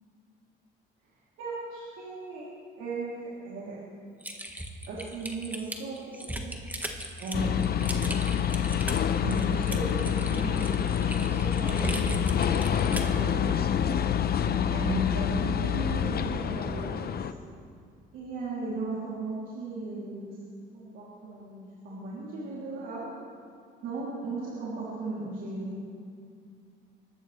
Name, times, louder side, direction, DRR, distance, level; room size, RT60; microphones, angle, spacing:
voice 1, 1.4-2.4 2.8-3.8 4.9-6.5 7.2-7.7 9.2-12.4 12.9-13.6 14.5-17.2 18.1-20.4 20.7-23.1 23.8-25.8, right 2 dB, 85° right, -7 dB, 3.1 m, -36 dB
Typing, 4.2-13.2, right 1 dB, 10° right, 1.4 m, -37 dB
sound 1, 7.3-17.3, left 8 dB, 50° left, 0.7 m, -27 dB
23.5 x 12.0 x 3.3 m, 2.3 s
cardioid pair, 90°, 20 cm